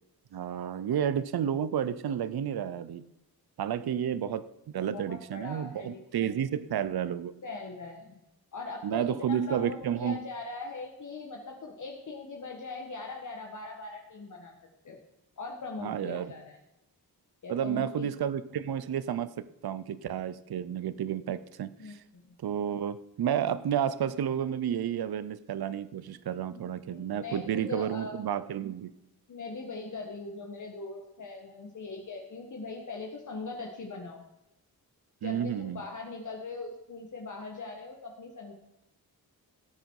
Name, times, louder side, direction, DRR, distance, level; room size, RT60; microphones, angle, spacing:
voice 1, 0.3-3.1 3.6-4.5 4.7-7.4 8.8-10.2 15.8-16.3 17.5-22.0 22.4-28.9 35.2-35.8, right 9 dB, 75° right, 16 dB, 0.7 m, -31 dB
voice 2, 4.8-6.4 7.4-8.2 8.5-14.5 14.8-15.0 15.4-16.6 17.4-18.1 21.8-22.3 26.5-26.6 26.9-28.2 29.3-34.2 35.2-38.5, left 3 dB, 50° left, 1 dB, 1.6 m, -41 dB
16.5 x 9.1 x 4.8 m, 0.89 s
wide cardioid pair, 135°, 38 cm